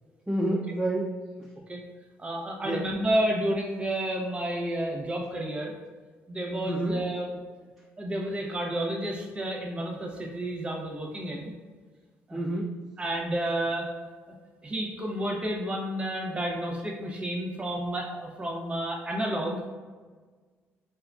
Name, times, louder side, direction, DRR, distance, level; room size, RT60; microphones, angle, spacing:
voice 1, 0.3-1.1 2.6-2.9 6.6-7.1 12.3-12.8, right 1 dB, 5° right, -3 dB, 0.3 m, -29 dB
voice 2, 2.2-5.7 6.3-7.4 8.0-11.5 12.3-12.4 13.0-13.9 14.3-14.4 14.6-19.7, right 1 dB, 25° right, 0 dB, 0.8 m, -30 dB
4.4 x 2.4 x 2.3 m, 1.4 s
cardioid pair, 90°, 5 cm